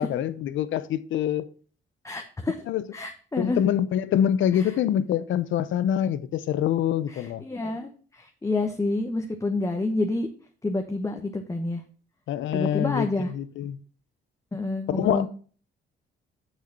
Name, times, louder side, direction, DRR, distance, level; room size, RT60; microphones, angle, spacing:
voice 1, 0.0-1.5 2.7-2.8 3.4-7.4 12.3-13.8 14.9-15.3, left 10 dB, 75° left, 0.7 m, -25 dB
voice 2, 2.0-2.6 2.9-3.6 4.6-4.7 7.1-10.3 10.6-11.8 12.5-13.3 14.5-15.3, left 2 dB, 15° left, 1.0 m, -28 dB
6.4 x 6.4 x 5.9 m
cardioid pair, 90°, 20 cm